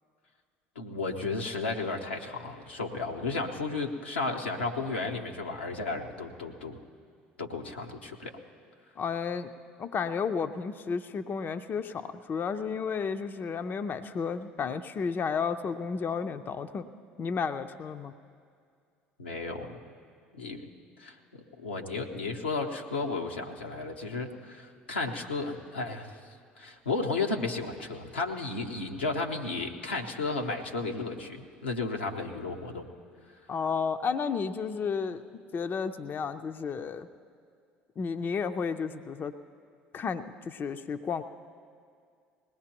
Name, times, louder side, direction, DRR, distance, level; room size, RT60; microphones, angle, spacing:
voice 1, 0.8-6.8 7.4-8.3 19.2-19.8 20.3-20.7 21.0-26.2 26.6-32.9, left 3 dB, 90° left, 1 dB, 0.9 m, -33 dB
voice 2, 9.0-9.5 9.8-16.9 17.2-18.1 33.5-37.1 38.0-39.3 39.9-41.2, left 5 dB, 35° left, 9 dB, 0.5 m, -32 dB
20.5 x 17.5 x 3.0 m, 2.2 s
hypercardioid pair, 65°, 6 cm